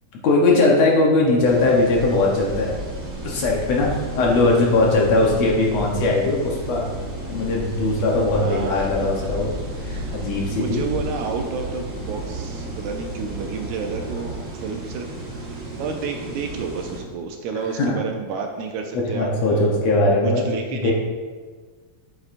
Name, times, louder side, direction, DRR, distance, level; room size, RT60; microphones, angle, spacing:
voice 1, 0.2-2.7 3.2-6.9 7.3-10.9 17.8-18.0 18.9-20.4 20.7-20.9, left 2 dB, 70° left, -2 dB, 1.8 m, -20 dB
sound 1, 1.4-17.0, right 1 dB, 60° right, 0.8 m, -33 dB
sound 2, 4.6-14.7, right 3 dB, 30° right, 2.4 m, -37 dB
voice 2, 8.4-8.9 9.2-9.3 9.9-10.2 10.5-14.3 14.6-15.1 15.4-19.7 20.2-20.9, right 5 dB, 80° right, 4 dB, 1.8 m, -30 dB
8.3 x 7.6 x 2.5 m, 1.5 s
omnidirectional pair, 3.6 m